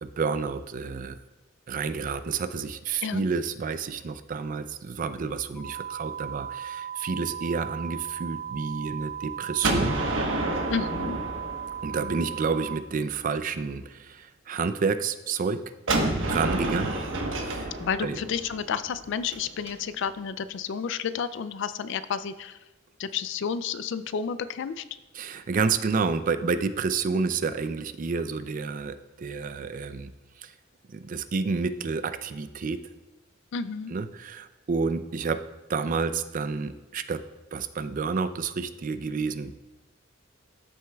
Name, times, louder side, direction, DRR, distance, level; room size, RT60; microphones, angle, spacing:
voice 1, 0.0-1.2 1.7-10.0 11.8-15.7 16.3-16.9 17.4-17.7 18.0-18.2 25.1-30.1 30.4-30.5 30.9-32.8 33.9-35.4 35.7-37.2 37.5-39.5, right 5 dB, 40° right, 12 dB, 0.4 m, -29 dB
sound 1, 5.6-12.7, right 9 dB, 15° left, 1.2 m, -37 dB
Gunshot gunfire, 9.6-12.4 15.9-19.7, right 2 dB, 70° right, 1.2 m, -29 dB
voice 2, 10.7-11.2 17.8-22.6 23.0-24.8 33.5-33.9, left 6 dB, 65° left, 13 dB, 0.4 m, -31 dB
12.5 x 6.2 x 2.3 m, 1.1 s
head